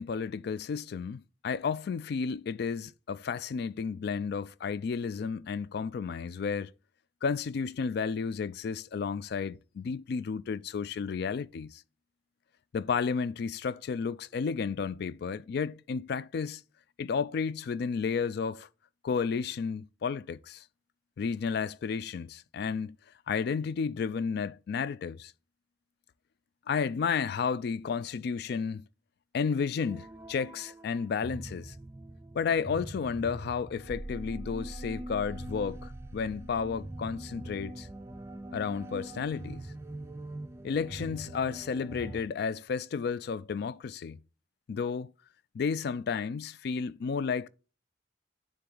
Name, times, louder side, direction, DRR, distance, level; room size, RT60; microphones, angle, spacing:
voice 1, 0.0-6.7 7.2-11.8 12.7-16.6 17.0-18.7 19.0-20.6 21.2-23.0 23.3-25.3 26.7-28.8 29.3-31.7 32.3-37.9 38.5-39.6 40.6-44.2 44.7-45.1 45.5-47.5, left 5 dB, 60° left, 0.3 m, -32 dB
sound 1, 29.8-42.2, right 1 dB, 15° right, 0.4 m, -43 dB
9.8 x 3.4 x 3.8 m
head